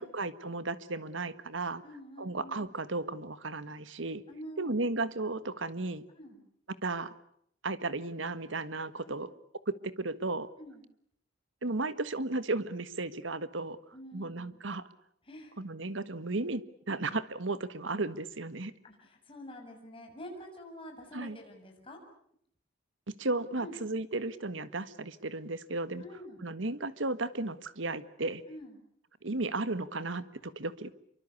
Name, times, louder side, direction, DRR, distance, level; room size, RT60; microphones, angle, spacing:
voice 1, 0.0-1.8 2.2-4.2 4.6-6.0 6.8-7.1 7.6-9.3 9.7-10.5 11.6-13.8 14.1-14.9 15.6-18.7 21.1-21.4 23.1-26.0 26.4-28.4 29.2-30.9, right 2 dB, 75° right, 14 dB, 1.5 m, -34 dB
voice 2, 1.8-2.7 4.3-4.7 6.2-6.4 9.0-9.2 10.6-10.8 13.9-14.6 15.2-15.6 18.8-22.0 23.6-23.8 26.0-26.5 28.5-28.8, equal, 30° left, 2 dB, 7.2 m, -47 dB
27.5 x 24.0 x 8.4 m, 0.69 s
head